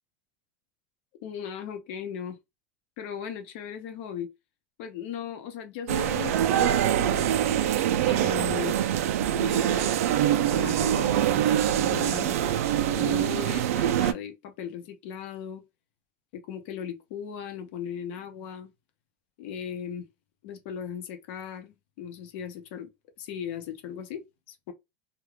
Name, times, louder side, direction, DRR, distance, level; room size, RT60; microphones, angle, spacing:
voice 1, 1.2-2.4 3.0-4.3 4.8-7.4 8.0-8.8 9.3-9.9 10.2-12.4 13.0-15.6 16.3-18.7 19.4-20.1 20.4-22.9 23.2-24.2 24.7-24.8, left 8 dB, 55° left, 0.7 m, -37 dB
sound 1, 5.9-14.1, right 11 dB, 85° right, 0.3 m, -24 dB
2.3 x 2.2 x 3.1 m
supercardioid pair, 165°, 8 cm